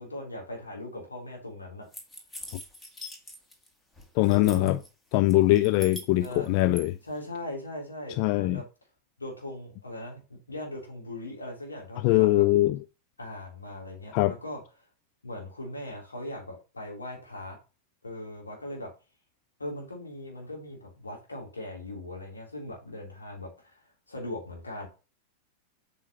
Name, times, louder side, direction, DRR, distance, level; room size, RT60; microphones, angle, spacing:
voice 1, 0.0-1.9 4.2-4.8 6.2-6.5 7.0-8.6 9.2-10.2 10.5-12.4 13.2-14.6 15.2-17.6 18.0-18.9 19.6-24.9, left 1 dB, 80° left, 3.3 m, -39 dB
sound 1, 1.9-3.7 4.0-4.9 5.3-6.8, left 1 dB, 10° left, 2.0 m, -43 dB
voice 2, 4.2-4.8 5.1-7.0 8.2-8.6 12.0-12.8 14.1-14.3, left 17 dB, 45° left, 0.3 m, -22 dB
8.1 x 5.5 x 2.9 m
figure-of-eight pair, 90°, 0 cm